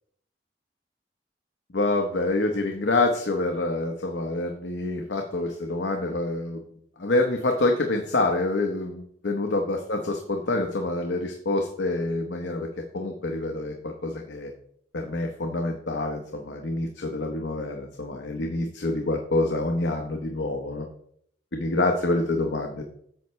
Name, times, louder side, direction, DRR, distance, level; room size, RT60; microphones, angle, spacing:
voice 1, 1.7-6.6 7.0-12.7 12.9-14.5 14.9-20.9 21.5-22.8, left 2 dB, 75° left, 2 dB, 0.9 m, -27 dB
9.0 x 6.7 x 3.2 m, 0.67 s
head